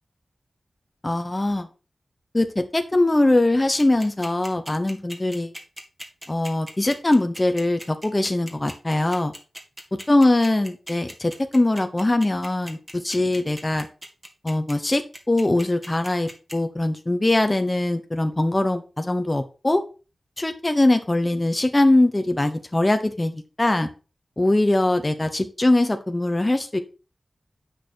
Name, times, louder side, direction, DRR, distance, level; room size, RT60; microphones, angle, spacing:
voice 1, 1.0-1.7 2.3-5.5 6.3-9.3 9.9-13.9 14.4-15.0 15.3-19.8 20.4-23.9 24.4-26.8, left 2 dB, 25° left, 7 dB, 0.9 m, -22 dB
sound 1, 3.8-16.5, equal, 15° right, 2.0 m, -38 dB
9.0 x 6.5 x 4.4 m, 0.33 s
wide cardioid pair, 105°, 0 cm